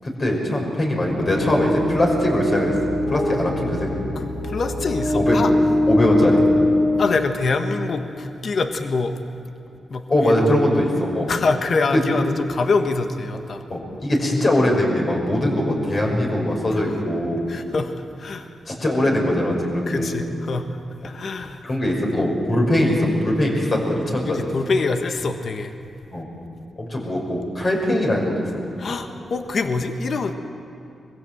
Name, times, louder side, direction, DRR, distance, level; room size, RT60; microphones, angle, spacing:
voice 1, 0.0-2.7 3.1-3.9 5.1-5.4 5.9-6.4 10.1-11.3 11.9-12.0 13.7-17.5 18.7-20.2 21.6-24.5 26.1-26.3 26.8-28.3 28.6-28.8, left 1 dB, 45° left, -1 dB, 6.1 m, -21 dB
sound 1, 1.1-8.0, left 1 dB, 80° left, 4.4 m, -23 dB
voice 2, 4.1-5.5 7.0-9.2 9.9-10.3 11.3-13.6 17.5-17.9 18.2-18.5 19.9-20.7 21.0-21.6 21.9-22.3 24.3-25.7 28.8-30.3, left 3 dB, 60° left, 7 dB, 1.3 m, -25 dB
22.5 x 16.0 x 7.9 m, 2.7 s
cardioid pair, 60°, 0 cm